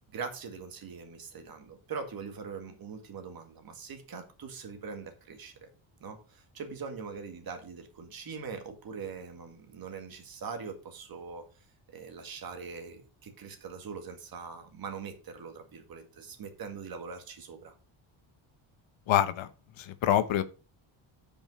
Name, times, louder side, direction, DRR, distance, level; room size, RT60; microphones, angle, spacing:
voice 1, 0.1-5.5 6.0-11.5 11.9-17.7, right 5 dB, 45° right, 1.9 m, -42 dB
voice 2, 19.1-19.5 19.8-20.4, left 11 dB, 70° left, 0.9 m, -25 dB
9.1 x 5.4 x 5.4 m
cardioid pair, 175°, 49 cm